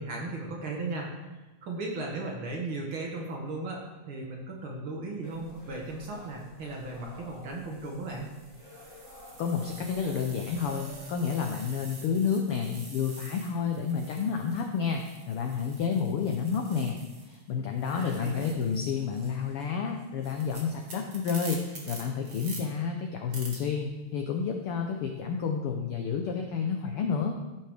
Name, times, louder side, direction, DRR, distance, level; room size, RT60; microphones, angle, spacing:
voice 1, 0.0-8.3 17.8-18.5, right 2 dB, 55° right, -1 dB, 1.7 m, -36 dB
sound 1, 5.2-11.1, right 1 dB, 35° left, 2.4 m, -51 dB
Bug Zapper Long moth electrocution, 6.2-6.5 7.2-17.4 17.7-22.6 23.3-23.6, right 2 dB, 40° right, 1.2 m, -47 dB
voice 2, 9.4-17.0 17.2-27.3, left 6 dB, 90° left, 3 dB, 1.2 m, -30 dB
14.5 x 5.6 x 3.4 m, 1.1 s
omnidirectional pair, 3.4 m